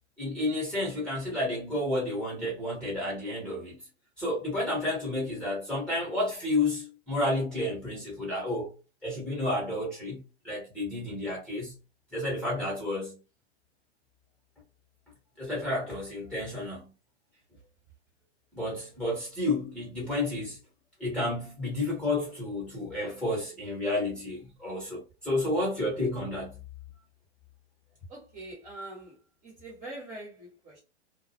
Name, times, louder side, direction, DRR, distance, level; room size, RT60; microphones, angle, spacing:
voice 1, 0.2-3.8 4.2-8.7 9.0-11.7 12.1-13.2 15.4-16.9 18.5-20.6 21.0-26.6, left 2 dB, 5° left, 1.0 m, -31 dB
voice 2, 28.1-29.2 29.4-30.8, right 2 dB, 25° right, 1.0 m, -43 dB
2.1 x 2.1 x 2.7 m
hypercardioid pair, 130°, 33 cm